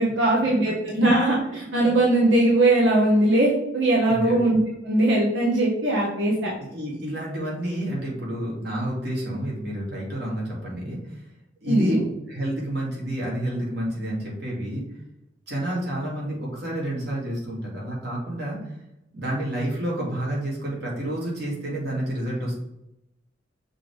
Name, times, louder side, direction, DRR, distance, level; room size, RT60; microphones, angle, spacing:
voice 1, 0.0-4.6 4.8-6.5 11.6-12.0, right 1 dB, 85° right, -4 dB, 1.4 m, -20 dB
voice 2, 4.0-4.4 6.7-11.2 11.6-14.8 15.5-18.8 19.1-22.6, right 1 dB, 60° right, -4 dB, 2.4 m, -29 dB
6.0 x 3.4 x 4.8 m, 0.86 s
head